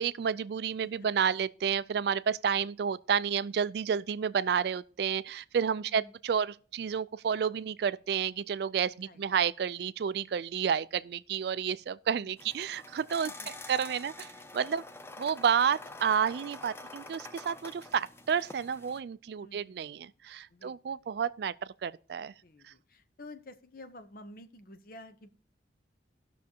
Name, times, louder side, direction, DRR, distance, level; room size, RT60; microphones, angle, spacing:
voice 1, 0.0-13.3 13.7-14.8 15.2-22.3 22.6-22.7, right 7 dB, 60° right, 0.3 m, -30 dB
voice 2, 5.8-6.1 8.9-9.2 12.2-12.3 13.2-13.5 19.4-20.1 20.5-21.0 22.4-25.3, left 1 dB, 50° left, 0.8 m, -51 dB
sound 1, 12.4-19.0, left 2 dB, 15° left, 0.5 m, -47 dB
18.0 x 6.3 x 2.8 m
head